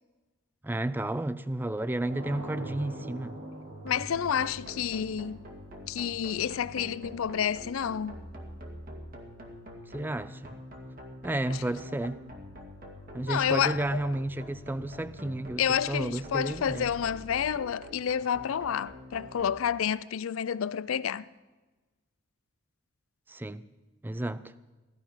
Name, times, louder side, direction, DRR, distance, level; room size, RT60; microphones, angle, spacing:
voice 1, 0.6-3.4 9.9-10.6 11.2-12.2 13.1-16.9 23.3-23.7 24.0-24.5, right 1 dB, 10° right, 0.4 m, -32 dB
sound 1, 2.0-6.7, right 1 dB, 70° right, 3.5 m, -44 dB
voice 2, 3.8-5.4 5.9-8.2 11.5-11.6 13.3-14.1 15.6-21.2, left 8 dB, 80° left, 0.4 m, -29 dB
sound 2, 3.9-19.5, equal, 45° right, 2.1 m, -46 dB
16.5 x 13.0 x 5.7 m
head